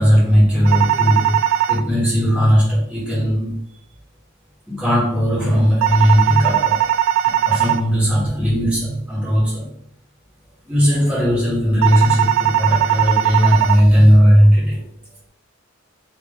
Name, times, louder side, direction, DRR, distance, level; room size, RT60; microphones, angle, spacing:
voice 1, 0.0-1.4 1.7-3.6 4.7-6.9 7.4-9.7 10.7-14.8, equal, 5° right, -8 dB, 1.4 m, -16 dB
sound 1, 0.7-1.8 5.8-7.8 11.8-13.8, right 12 dB, 85° right, 0.3 m, -18 dB
3.5 x 2.8 x 3.6 m, 0.69 s
head